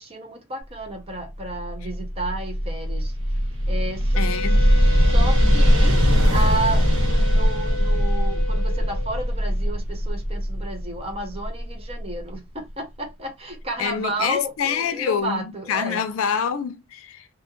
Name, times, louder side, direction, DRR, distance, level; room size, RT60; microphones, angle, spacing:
voice 1, 0.0-3.4 3.7-4.2 5.0-16.0, right 1 dB, 30° right, 0.7 m, -32 dB
sound 1, 1.4-12.1, equal, 80° right, 1.5 m, -20 dB
voice 2, 4.1-4.6 13.8-17.3, left 7 dB, 90° left, 0.4 m, -26 dB
Wind instrument woodwind instrument, 4.1-9.3, left 2 dB, 10° left, 0.7 m, -33 dB
2.4 x 2.2 x 2.9 m
head